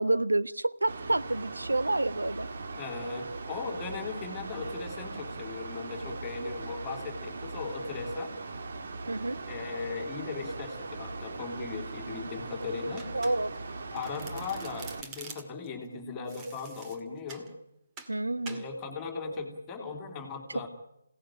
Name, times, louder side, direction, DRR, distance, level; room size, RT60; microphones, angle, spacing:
voice 1, 0.0-2.5 9.1-9.4 13.1-13.5 18.1-18.6, right 2 dB, 75° right, 14 dB, 1.1 m, -28 dB
Mechanical fan, 0.9-15.0, right 3 dB, 45° right, 1.8 m, -40 dB
voice 2, 2.7-8.3 9.5-13.1 13.9-17.5 18.5-20.7, left 4 dB, 15° left, 2 dB, 2.8 m, -38 dB
Domestic sounds home sounds, 13.0-13.7 14.0-15.7 16.3-17.5 18.0-18.2 18.5-18.7, right 4 dB, 20° right, 2.0 m, -46 dB
27.5 x 18.0 x 8.9 m, 0.84 s
figure-of-eight pair, 145°, 0 cm